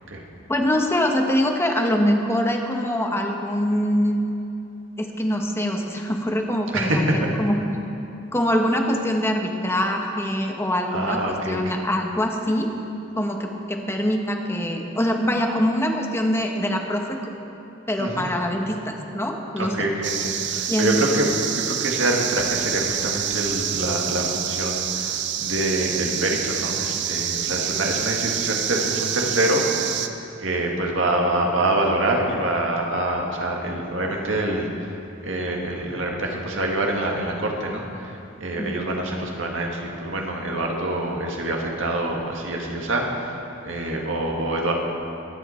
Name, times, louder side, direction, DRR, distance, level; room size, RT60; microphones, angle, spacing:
voice 1, 0.5-4.2 5.0-7.6 8.3-12.7 13.2-17.3 17.9-19.9 20.7-20.9 38.6-38.7, equal, 15° left, 2 dB, 1.0 m, -24 dB
voice 2, 6.7-7.3 10.9-11.7 18.0-18.3 19.6-21.3 21.6-30.0 30.4-34.9 35.2-43.4 43.6-44.7, right 1 dB, 80° right, 0 dB, 1.8 m, -25 dB
sound 1, 20.0-30.1, right 9 dB, 60° right, 0.7 m, -27 dB
22.5 x 9.1 x 4.4 m, 2.9 s
head